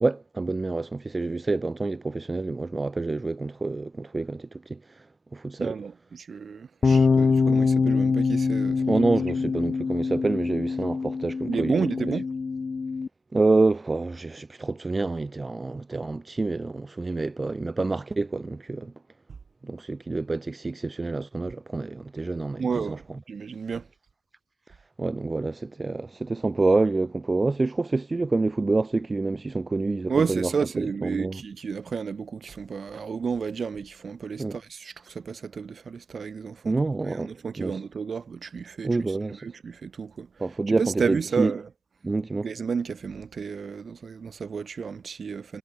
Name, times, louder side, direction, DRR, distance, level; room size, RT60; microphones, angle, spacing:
voice 1, 0.0-5.1 5.3-5.8 7.5-7.6 8.9-11.7 13.3-18.9 19.6-23.0 25.0-30.5 30.8-31.4 34.4-34.6 36.6-37.3 37.6-37.8 38.8-39.5 40.4-41.5 42.0-42.5, right 3 dB, 35° right, 0.8 m, -27 dB
voice 2, 5.6-8.9 9.4-9.5 11.5-12.3 22.6-23.9 30.1-36.8 37.1-39.0 39.3-40.3 40.7-41.7 42.4-45.6, right 5 dB, 75° right, 4.3 m, -31 dB
sound 1, 6.8-13.1, left 4 dB, 55° left, 0.8 m, -24 dB
wide cardioid pair, 125°, 0 cm